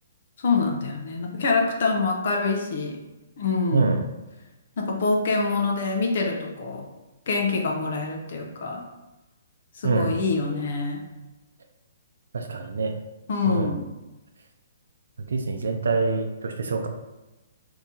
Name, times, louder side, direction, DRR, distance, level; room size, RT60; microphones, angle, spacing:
voice 1, 0.4-3.0 3.4-3.9 4.8-6.9 7.3-8.8 9.7-11.0 13.3-13.8, left 4 dB, 60° left, 2 dB, 0.6 m, -25 dB
voice 2, 3.7-4.1 9.8-10.1 12.3-13.0 13.5-13.8 15.2-16.9, right 4 dB, 85° right, 4 dB, 0.5 m, -25 dB
2.8 x 2.7 x 3.6 m, 1.1 s
hypercardioid pair, 155°, 0 cm